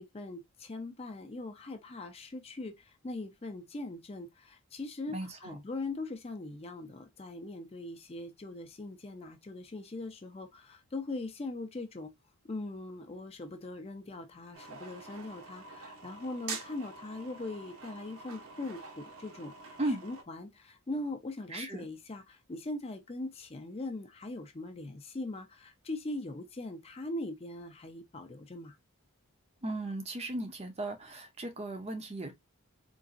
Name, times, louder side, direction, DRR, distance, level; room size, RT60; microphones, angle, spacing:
voice 1, 0.0-12.1 12.4-19.8 20.0-28.8, left 2 dB, 25° left, 0.4 m, -41 dB
voice 2, 5.1-5.6 19.8-20.0 21.5-21.9 29.6-32.3, right 2 dB, 25° right, 0.5 m, -36 dB
sound 1, 14.5-20.2, right 4 dB, 75° right, 0.7 m, -46 dB
3.8 x 2.4 x 2.4 m
head